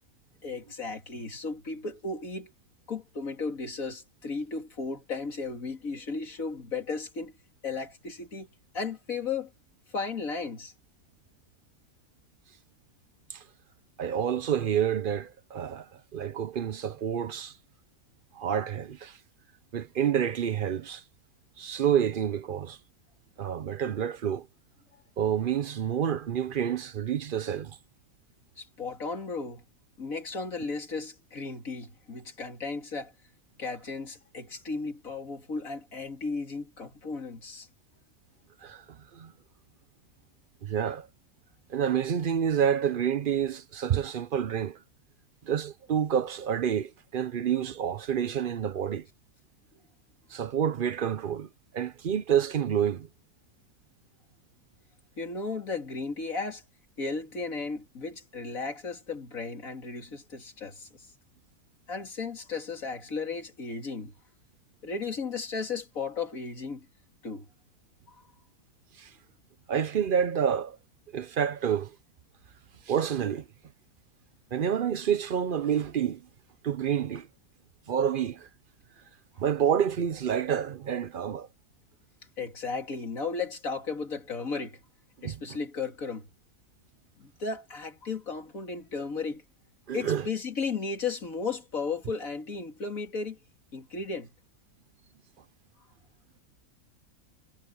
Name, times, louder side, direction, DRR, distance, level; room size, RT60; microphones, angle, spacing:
voice 1, 0.4-2.5 2.9-7.3 7.6-8.5 8.7-9.5 9.9-10.7 24.9-25.0 28.6-29.6 30.0-33.1 33.6-37.7 55.2-56.6 57.0-61.1 61.9-64.1 64.8-66.9 67.2-67.5 68.1-68.2 82.4-84.8 85.2-86.3 87.2-89.4 89.9-93.4 93.7-94.3, left 4 dB, 65° left, 3.1 m, -35 dB
voice 2, 14.0-17.5 18.4-19.2 19.7-21.0 21.6-22.8 23.4-24.5 25.2-27.8 38.6-39.3 40.6-41.1 41.7-44.8 45.5-49.0 50.3-51.5 51.7-53.1 69.0-69.1 69.7-70.8 71.1-71.9 72.9-73.4 74.5-76.2 76.6-77.3 77.9-78.5 79.4-81.5 85.2-85.4 89.9-90.3, right 8 dB, 55° right, 0.6 m, -28 dB
omnidirectional pair, 1.6 m